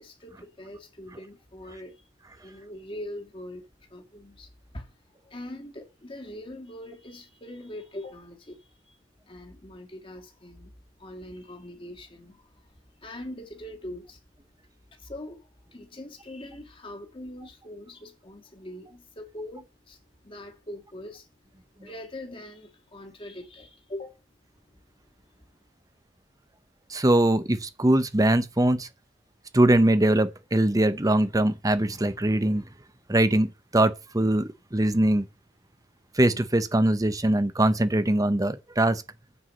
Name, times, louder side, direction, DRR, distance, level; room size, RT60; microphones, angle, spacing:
voice 1, 0.0-2.0 2.4-4.5 4.7-4.9 5.2-9.0 9.3-10.7 11.0-12.4 13.0-14.2 15.0-20.0 20.2-21.3 21.8-24.2, left 1 dB, 30° left, 1.8 m, -42 dB
voice 2, 26.9-28.9 29.5-32.7 33.1-35.3 36.1-39.0, right 1 dB, 20° right, 0.9 m, -22 dB
9.7 x 4.9 x 7.7 m
head